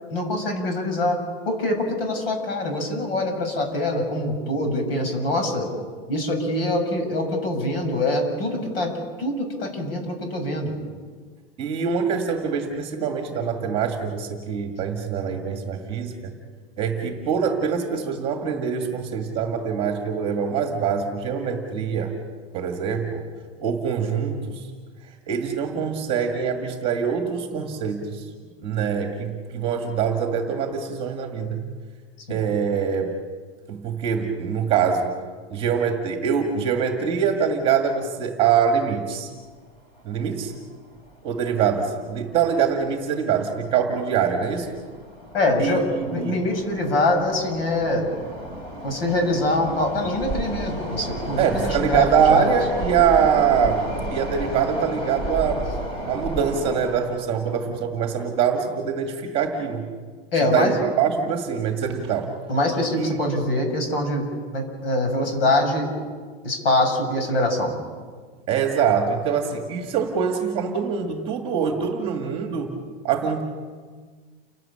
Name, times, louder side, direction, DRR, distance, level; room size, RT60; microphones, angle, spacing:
voice 1, 0.1-1.2 1.5-5.7 6.1-8.9 9.2-10.7 32.3-32.4 45.3-45.8 46.1-48.1 48.8-52.6 60.3-60.7 62.5-64.2 64.5-65.9 66.4-67.8, left 1 dB, 70° left, 3 dB, 7.0 m, -24 dB
voice 2, 11.6-16.3 16.8-22.1 22.5-23.2 23.6-24.7 25.3-28.2 28.6-31.6 32.3-33.1 33.7-35.1 35.5-39.3 40.0-40.5 41.2-44.7 45.6-46.3 51.4-55.7 56.1-59.9 60.5-62.3 63.0-63.2 68.5-72.8 73.0-73.4, right 7 dB, 15° right, 4 dB, 1.9 m, -24 dB
sound 1, 40.1-40.2 40.4-40.5 41.3-41.5 41.8-42.0 42.5-42.9 43.4-57.0, right 1 dB, 20° left, 2.9 m, -32 dB
29.5 x 12.5 x 8.7 m, 1.6 s
supercardioid pair, 175°, 31 cm